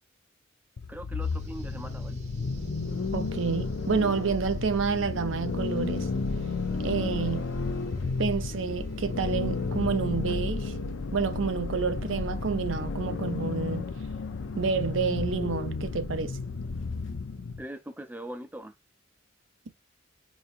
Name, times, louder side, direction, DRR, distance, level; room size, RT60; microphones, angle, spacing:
sound 1, 0.8-17.6, left 4 dB, 70° left, 0.6 m, -33 dB
voice 1, 0.9-2.2 13.1-13.2 17.6-18.7, right 1 dB, 10° right, 0.6 m, -41 dB
sound 2, 1.2-12.8, left 1 dB, 35° right, 0.8 m, -39 dB
voice 2, 3.1-6.1 6.8-7.5 8.2-10.7 11.1-13.9 14.6-16.4, right 5 dB, 70° right, 0.5 m, -29 dB
5.1 x 2.8 x 2.5 m
head